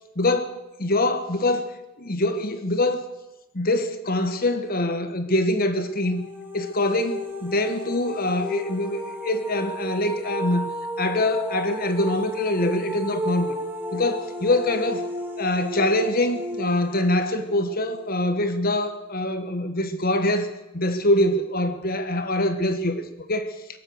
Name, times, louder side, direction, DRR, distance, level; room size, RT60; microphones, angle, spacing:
voice 1, 0.1-1.6 2.0-3.1 3.5-6.2 6.5-10.7 11.0-13.6 13.9-15.1 15.4-23.5, left 1 dB, 45° left, 8 dB, 1.4 m, -24 dB
sound 1, 5.9-18.8, equal, 10° right, 1.8 m, -34 dB
23.0 x 7.8 x 8.1 m, 0.99 s
head